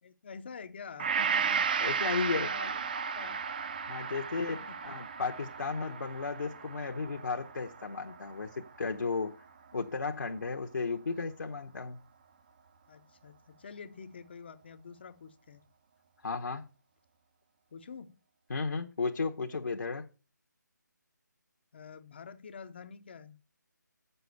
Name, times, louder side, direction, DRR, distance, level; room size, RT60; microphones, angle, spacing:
voice 1, 0.0-2.0 2.3-3.4 4.0-4.1 4.5-5.0 12.9-15.6 17.7-18.2 21.7-23.4, left 5 dB, 35° left, 0.6 m, -48 dB
Gong, 1.0-9.3 9.8-9.9, right 6 dB, 30° right, 0.5 m, -34 dB
voice 2, 1.8-2.5 3.9-9.3 9.7-12.0 16.2-16.6 18.5-20.1, left 4 dB, 70° left, 1.0 m, -34 dB
7.6 x 6.8 x 8.0 m
figure-of-eight pair, 165°, 10 cm